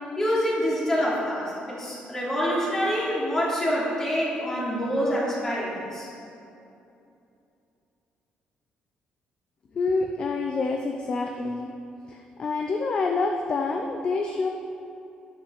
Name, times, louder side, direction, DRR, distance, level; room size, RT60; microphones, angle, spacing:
voice 1, 0.2-6.1, equal, 15° left, -6 dB, 3.2 m, -26 dB
voice 2, 9.7-11.7 12.1-14.5, left 3 dB, 35° left, 2 dB, 0.7 m, -27 dB
12.0 x 11.5 x 4.8 m, 2.7 s
cardioid pair, 180°, 3 cm